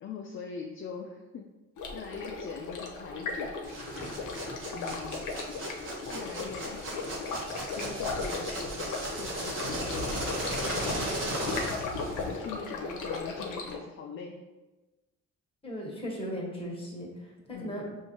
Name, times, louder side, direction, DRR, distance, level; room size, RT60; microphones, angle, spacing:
voice 1, 0.0-1.5 1.9-3.6 4.7-5.2 6.1-6.9 7.7-11.5 12.2-14.5 17.5-17.9, left 5 dB, 40° left, 1 dB, 0.5 m, -42 dB
Stream, 1.8-13.8, left 3 dB, 75° left, 0.8 m, -36 dB
sound 1, 3.6-12.4, right 1 dB, 40° right, 1.1 m, -36 dB
voice 2, 15.6-18.0, equal, 20° left, -3 dB, 1.4 m, -37 dB
5.6 x 2.7 x 2.9 m, 1.1 s
cardioid pair, 90°, 30 cm